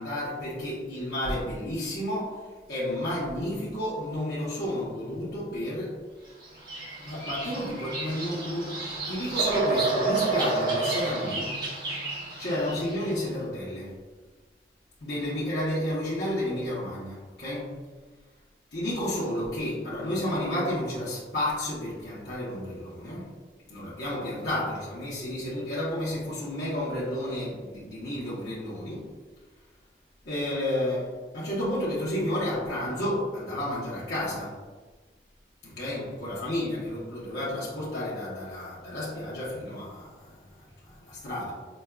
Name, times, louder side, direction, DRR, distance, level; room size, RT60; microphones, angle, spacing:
voice 1, 0.0-6.0 7.0-11.6 12.4-14.0 15.0-17.8 18.7-23.3 23.7-29.1 30.2-34.6 35.6-41.5, left 1 dB, 65° left, -9 dB, 0.9 m, -31 dB
Bird vocalization bird call bird song, 6.4-13.0, right 3 dB, 60° right, 1.4 m, -30 dB
5.2 x 2.3 x 2.3 m, 1.3 s
head